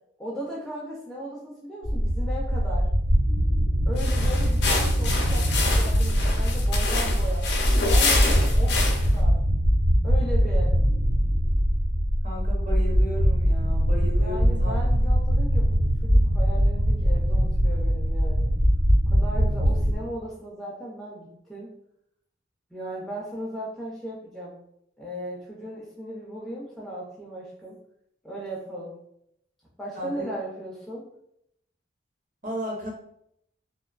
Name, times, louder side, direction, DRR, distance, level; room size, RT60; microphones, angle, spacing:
voice 1, 0.2-2.9 3.9-7.5 7.8-9.4 10.0-10.8 14.2-18.5 19.1-21.7 22.7-24.6 25.0-27.8 28.2-28.9 29.8-31.1, equal, ahead, -5 dB, 0.4 m, -37 dB
sound 1, 1.8-20.0, equal, 70° right, 1.1 m, -22 dB
sound 2, 3.9-9.2, left 3 dB, 60° left, 0.5 m, -28 dB
voice 2, 12.2-14.7 30.0-30.3 32.4-32.9, equal, 40° right, -3 dB, 0.7 m, -34 dB
2.5 x 2.2 x 2.3 m, 0.75 s
head